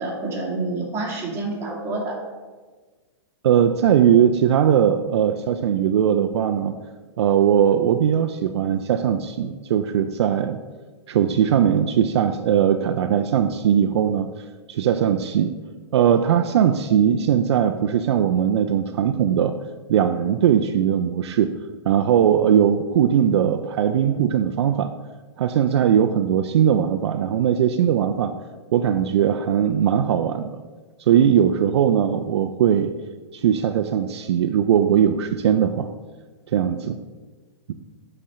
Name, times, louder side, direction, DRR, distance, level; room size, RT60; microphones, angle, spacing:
voice 1, 0.0-2.2, right 2 dB, 15° right, -3 dB, 2.0 m, -28 dB
voice 2, 3.4-6.7 7.2-10.6 11.1-14.3 14.7-15.5 15.9-19.6 19.9-21.5 21.9-24.9 25.4-28.3 28.7-30.5 31.1-32.9 33.3-35.9 36.5-37.0, right 9 dB, 70° right, 7 dB, 0.5 m, -19 dB
7.6 x 4.3 x 4.9 m, 1.3 s
hypercardioid pair, 145°, 15 cm